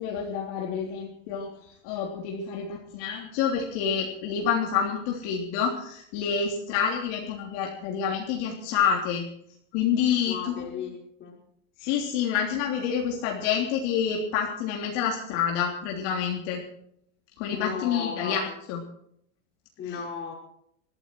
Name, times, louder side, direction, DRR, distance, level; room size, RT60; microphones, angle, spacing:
voice 1, 0.0-1.5 1.8-9.2 9.7-10.6 11.8-16.6 17.4-18.8, left 7 dB, 55° left, 0 dB, 3.4 m, -28 dB
voice 2, 10.2-11.4 17.5-18.6 19.8-20.3, left 6 dB, 30° left, 0 dB, 5.2 m, -35 dB
21.5 x 14.5 x 4.7 m, 0.71 s
supercardioid pair, 150°, 38 cm